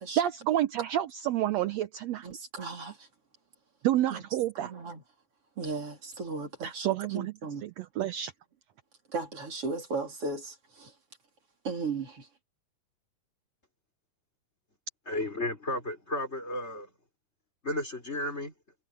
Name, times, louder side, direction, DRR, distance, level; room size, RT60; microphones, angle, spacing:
voice 1, 0.2-2.3 3.8-4.7 6.6-7.3 7.6-8.3, right 12 dB, 75° right, 1.6 m, -29 dB
voice 2, 2.2-3.1 4.1-4.2 4.6-5.0 5.6-7.7 9.1-10.9 11.6-12.3, right 3 dB, 40° right, 4.2 m, -36 dB
voice 3, 15.1-16.9 17.6-18.5, left 1 dB, 20° left, 4.3 m, -33 dB
omnidirectional pair, 3.9 m